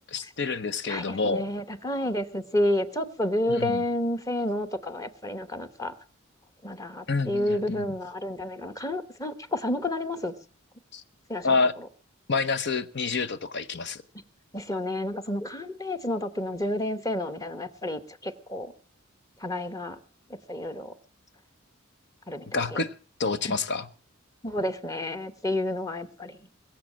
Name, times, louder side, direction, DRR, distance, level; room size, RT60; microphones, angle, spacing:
voice 1, 0.1-1.5 3.5-3.8 7.1-7.9 10.9-11.0 11.4-11.7 12.3-14.0 22.5-22.9 23.2-23.9, left 4 dB, 60° left, 0.9 m, -28 dB
voice 2, 0.9-5.9 6.6-10.3 11.3-11.5 14.5-18.7 19.4-20.0 20.5-20.9 22.3-22.8 23.4-23.5 24.4-26.4, left 1 dB, 15° left, 1.2 m, -30 dB
22.0 x 7.4 x 7.5 m
head